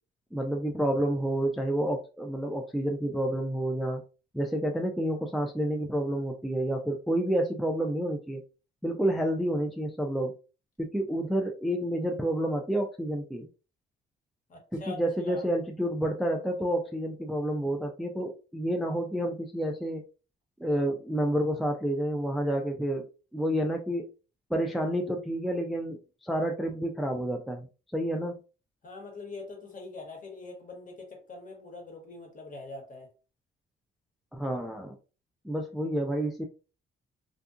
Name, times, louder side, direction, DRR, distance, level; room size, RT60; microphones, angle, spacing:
voice 1, 0.3-4.0 4.3-8.4 8.8-10.4 10.8-13.5 14.7-20.0 20.6-23.1 23.3-24.1 24.5-27.7 27.9-28.4 34.3-34.9 35.4-36.4, right 1 dB, ahead, 0.3 m, -29 dB
voice 2, 14.5-15.0 15.2-15.5 28.8-33.1, left 3 dB, 40° left, 1.1 m, -43 dB
2.6 x 2.4 x 2.4 m
cardioid pair, 90°, 20 cm